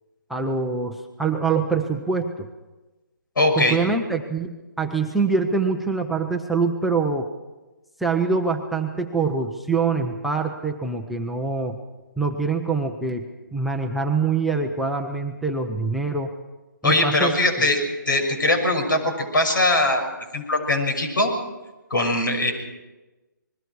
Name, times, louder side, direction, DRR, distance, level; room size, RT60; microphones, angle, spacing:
voice 1, 0.3-2.5 3.6-7.3 8.0-11.8 12.2-13.2 13.5-16.3 16.8-17.3, right 4 dB, ahead, 0 dB, 0.6 m, -24 dB
voice 2, 3.4-3.8 16.8-17.8 18.1-20.0 20.3-21.3 21.9-22.5, left 2 dB, 80° left, 4 dB, 6.4 m, -21 dB
28.5 x 21.0 x 4.7 m, 1.1 s
hypercardioid pair, 165°, 11 cm